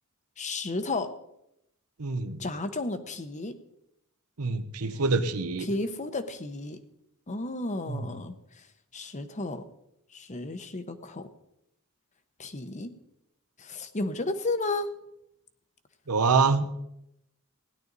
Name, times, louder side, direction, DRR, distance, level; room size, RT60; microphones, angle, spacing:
voice 1, 0.4-1.1 2.4-3.6 5.6-6.8 7.3-8.7 8.9-9.7 10.1-11.3 12.4-12.9 13.6-14.9, left 2 dB, 35° left, 9 dB, 0.9 m, -33 dB
voice 2, 2.0-2.4 4.4-5.7 7.9-8.0 16.1-16.7, right 4 dB, 85° right, 10 dB, 1.0 m, -25 dB
16.5 x 11.0 x 4.1 m, 0.81 s
head